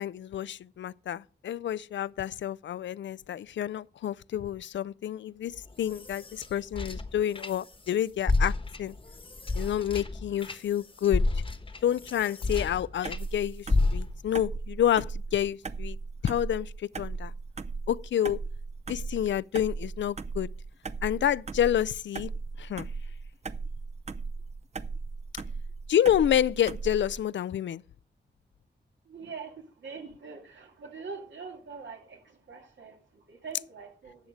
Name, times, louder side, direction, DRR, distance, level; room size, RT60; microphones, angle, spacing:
voice 1, 0.0-8.9 9.5-11.4 11.8-16.0 16.2-17.3 17.9-18.4 18.9-20.5 21.0-22.3 22.6-22.9 25.9-27.8, left 10 dB, 80° left, 0.4 m, -29 dB
sound 1, 5.6-7.9 8.2-13.3 13.7-14.4, left 2 dB, 30° left, 1.1 m, -30 dB
sound 2, 13.0-27.2, right 4 dB, 35° right, 0.6 m, -37 dB
voice 2, 29.1-34.3, right 5 dB, 85° right, 2.4 m, -44 dB
11.5 x 7.2 x 4.9 m
wide cardioid pair, 95°, 19 cm